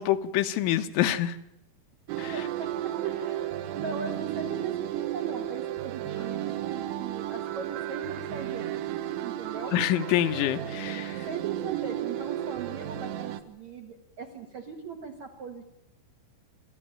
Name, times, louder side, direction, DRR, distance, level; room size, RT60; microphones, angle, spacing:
voice 1, 0.0-1.4 2.2-2.3 9.7-11.3, left 12 dB, 85° left, 9 dB, 3.4 m, -26 dB
sound 1, 2.1-13.4, right 12 dB, 80° right, 3.4 m, -33 dB
voice 2, 2.3-3.5 3.7-9.7 11.2-15.7, right 6 dB, 65° right, 4 dB, 1.9 m, -39 dB
27.5 x 13.5 x 8.9 m, 0.84 s
omnidirectional pair, 5.4 m